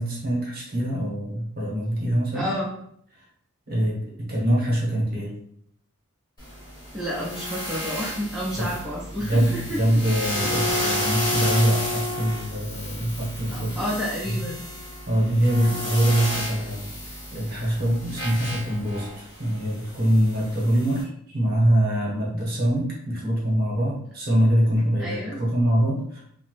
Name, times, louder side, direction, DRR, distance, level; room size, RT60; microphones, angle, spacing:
voice 1, 0.0-2.5 3.7-5.3 8.6-8.7 9.2-13.8 14.3-14.5 15.1-26.2, equal, 45° right, -4 dB, 0.9 m, -24 dB
voice 2, 2.3-2.7 6.9-9.8 13.5-14.6 25.0-25.4, equal, 5° right, -8 dB, 0.5 m, -30 dB
sound 1, 6.4-21.0, left 1 dB, 20° left, 0.9 m, -32 dB
2.8 x 2.0 x 3.1 m, 0.68 s
head